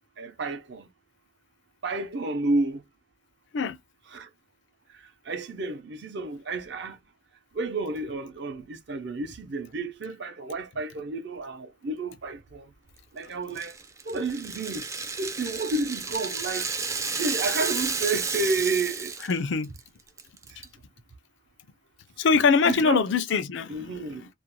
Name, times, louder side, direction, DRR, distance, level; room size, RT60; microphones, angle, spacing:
voice 1, 0.2-0.9 1.8-2.8 4.1-4.3 5.3-7.0 7.5-12.7 13.1-13.8 14.0-14.9 15.2-16.7 17.2-19.1 22.6-23.0 23.7-24.2, right 3 dB, 60° right, 0.6 m, -30 dB
Rattle (instrument), 13.6-19.4 19.6-19.8 20.2-20.6, right 4 dB, 15° right, 0.3 m, -32 dB
voice 2, 19.2-19.7 22.2-24.3, left 5 dB, 65° left, 0.4 m, -23 dB
2.4 x 2.1 x 3.0 m
head